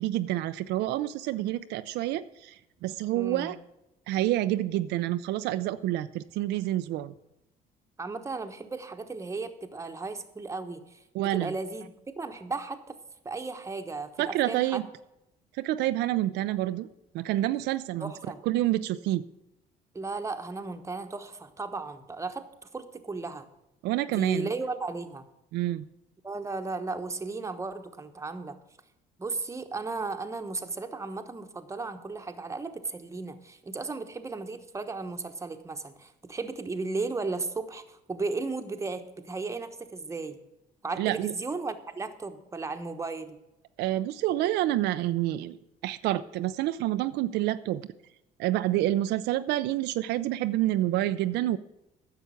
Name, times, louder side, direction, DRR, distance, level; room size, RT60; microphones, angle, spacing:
voice 1, 0.0-2.5 2.8-3.6 4.1-7.1 11.1-11.5 14.2-14.8 15.6-16.9 17.1-18.1 18.5-19.2 23.8-24.5 25.5-25.8 41.0-41.3 43.8-45.6 45.8-47.9 48.4-51.6, right 14 dB, 85° right, 11 dB, 0.5 m, -28 dB
voice 2, 3.1-3.5 8.0-13.0 13.2-14.8 18.0-18.4 19.9-22.5 22.7-23.5 24.1-25.2 26.2-28.6 29.2-40.4 40.8-43.4, right 3 dB, 15° right, 7 dB, 1.1 m, -35 dB
10.5 x 7.0 x 8.4 m, 0.88 s
cardioid pair, 110°, 17 cm